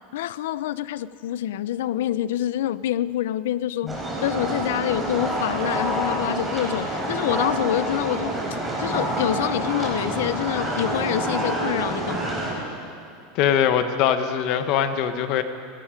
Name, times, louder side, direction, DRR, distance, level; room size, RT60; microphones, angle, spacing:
voice 1, 0.1-8.3 8.8-12.3, left 12 dB, 85° left, 0.5 m, -26 dB
sound 1, 3.9-12.5, right 1 dB, 5° right, 4.2 m, -27 dB
voice 2, 13.3-15.4, left 9 dB, 45° left, 1.2 m, -22 dB
29.0 x 18.0 x 5.1 m
supercardioid pair, 165°, 0 cm